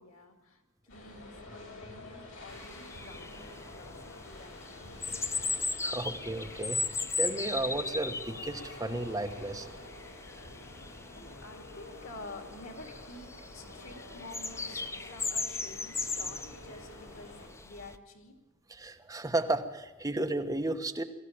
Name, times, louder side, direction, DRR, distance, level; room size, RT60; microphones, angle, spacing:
voice 1, 0.0-5.0 11.1-18.3, left 2 dB, 85° left, 5 dB, 2.7 m, -50 dB
sound 1, 0.9-17.5, left 2 dB, 70° left, 6.1 m, -48 dB
sound 2, 2.5-18.0, left 4 dB, 15° left, 0.6 m, -38 dB
voice 2, 5.8-6.8 7.2-9.7 18.7-21.0, right 2 dB, 15° right, 5 dB, 1.2 m, -33 dB
21.5 x 14.5 x 8.8 m, 1.1 s
head